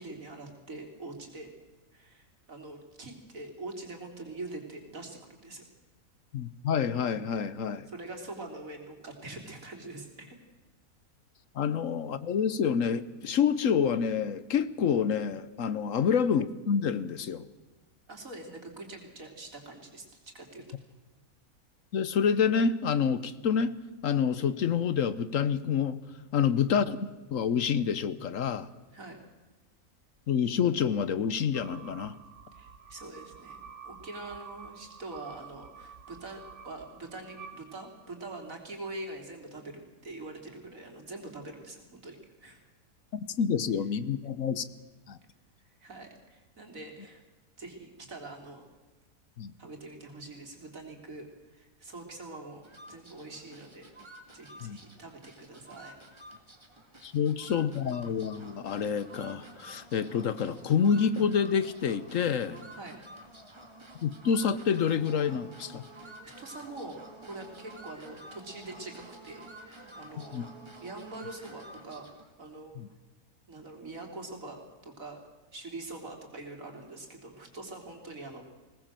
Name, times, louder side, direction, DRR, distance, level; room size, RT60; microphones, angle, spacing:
voice 1, 0.0-1.5 1.9-5.6 7.9-10.4 15.9-16.1 18.1-20.7 26.3-26.5 28.9-29.2 32.5-42.6 45.8-47.2 47.6-48.7 49.6-53.9 54.3-56.0 62.7-63.0 66.0-66.1 66.4-70.5 70.8-72.1 72.4-72.8 73.5-75.2 75.5-78.4, right 2 dB, 65° right, 3 dB, 3.8 m, -44 dB
voice 2, 6.3-7.8 11.5-17.4 21.9-23.7 24.0-26.0 26.3-28.7 30.3-32.1 43.1-44.6 45.1-45.2 49.4-49.5 54.6-54.8 57.0-62.6 64.0-65.8 70.3-70.4 72.8-72.9, left 7 dB, 65° left, 15 dB, 1.2 m, -28 dB
sound 1, 31.5-38.3, right 6 dB, 85° right, 1.9 m, -49 dB
sound 2, 52.6-72.3, right 1 dB, 20° right, 2.2 m, -50 dB
21.5 x 18.5 x 7.5 m, 1.2 s
omnidirectional pair, 1.5 m